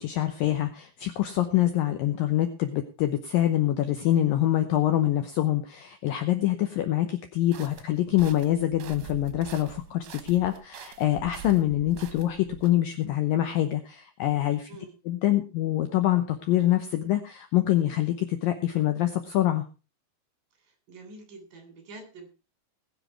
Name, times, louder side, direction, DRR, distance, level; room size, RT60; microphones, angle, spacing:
voice 1, 0.0-14.7 15.1-19.6, left 13 dB, 75° left, 7 dB, 2.1 m, -25 dB
sound 1, 7.5-12.7, right 11 dB, 75° right, 3.2 m, -45 dB
voice 2, 20.6-22.3, right 2 dB, 50° right, 6 dB, 4.6 m, -46 dB
20.0 x 7.3 x 4.4 m, 0.33 s
omnidirectional pair, 5.1 m